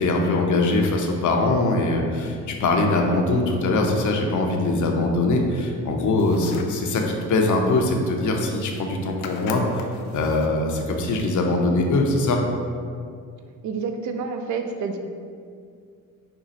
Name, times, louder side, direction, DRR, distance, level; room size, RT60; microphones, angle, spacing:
voice 1, 0.0-9.6 10.1-12.4, left 2 dB, 50° left, 2 dB, 0.8 m, -22 dB
sound 1, 6.0-6.8 8.3-8.4 8.6-8.9 9.2-10.6, left 5 dB, 85° left, 0.5 m, -40 dB
voice 2, 13.6-15.0, right 5 dB, 50° right, 5 dB, 0.6 m, -28 dB
5.5 x 2.3 x 4.0 m, 2.2 s
supercardioid pair, 65°, 38 cm